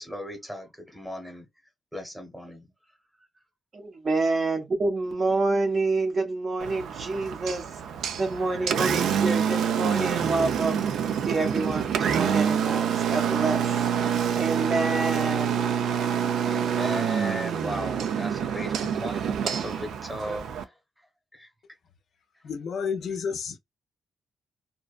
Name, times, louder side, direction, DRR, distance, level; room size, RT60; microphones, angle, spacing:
voice 1, 0.0-1.5 1.9-2.7 3.2-3.4 16.5-21.1 21.3-21.5, equal, ahead, 0.9 m, -37 dB
voice 2, 3.7-7.6 8.2-10.8 11.3-13.7 14.4-15.5, right 3 dB, 35° right, 0.6 m, -27 dB
Engine, 6.6-20.6, right 8 dB, 85° right, 0.4 m, -27 dB
voice 3, 22.4-23.6, left 6 dB, 60° left, 0.4 m, -30 dB
2.5 x 2.2 x 2.3 m
wide cardioid pair, 165°, 0 cm